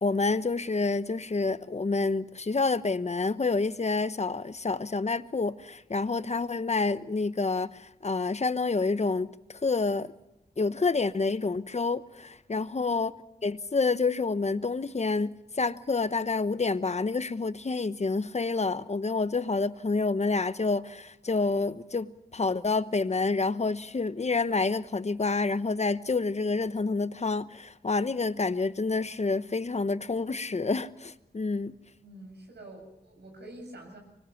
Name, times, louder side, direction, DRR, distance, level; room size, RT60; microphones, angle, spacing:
voice 1, 0.0-9.3 9.6-10.1 10.6-13.1 13.4-31.7, left 3 dB, 40° left, 1.0 m, -28 dB
voice 2, 32.0-34.0, right 1 dB, 80° right, 7.7 m, -47 dB
24.5 x 21.0 x 5.9 m
cardioid pair, 55°, 18 cm